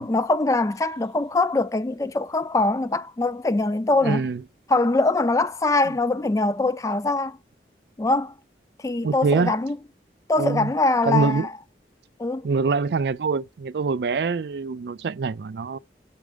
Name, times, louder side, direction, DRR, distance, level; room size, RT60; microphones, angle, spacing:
voice 1, 0.0-4.2 4.7-7.4 8.0-8.3 8.8-9.8 10.3-11.5 12.2-12.5, left 2 dB, 20° left, 0.3 m, -23 dB
voice 2, 4.0-4.4 9.0-9.5 10.4-10.7 11.1-11.5 12.4-15.8, right 4 dB, 70° right, 0.4 m, -24 dB
7.3 x 4.8 x 5.1 m
head